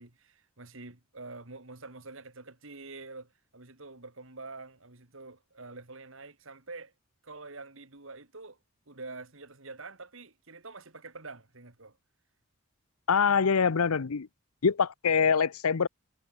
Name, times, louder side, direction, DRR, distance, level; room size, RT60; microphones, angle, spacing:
voice 1, 0.0-6.9 7.2-8.6 8.9-12.0, right 3 dB, 65° right, 2.4 m, -46 dB
voice 2, 13.1-14.3 14.6-15.9, left 6 dB, 85° left, 0.7 m, -24 dB
head